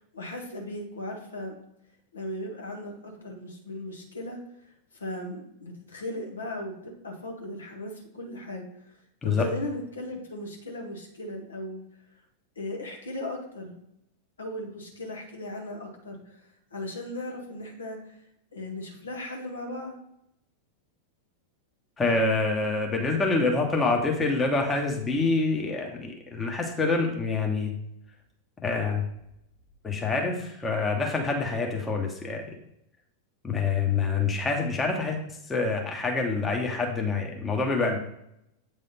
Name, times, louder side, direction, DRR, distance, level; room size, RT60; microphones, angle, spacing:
voice 1, 0.1-1.5 2.1-4.4 5.0-8.6 9.2-11.8 12.6-13.8 14.4-16.2 16.7-18.0 18.5-20.0, left 1 dB, 70° left, 1 dB, 1.4 m, -37 dB
voice 2, 22.0-27.7 28.6-29.0 29.8-32.4 33.4-38.0, left 3 dB, 15° left, 1 dB, 1.1 m, -26 dB
8.3 x 3.4 x 4.2 m, 0.79 s
figure-of-eight pair, 90°, 0 cm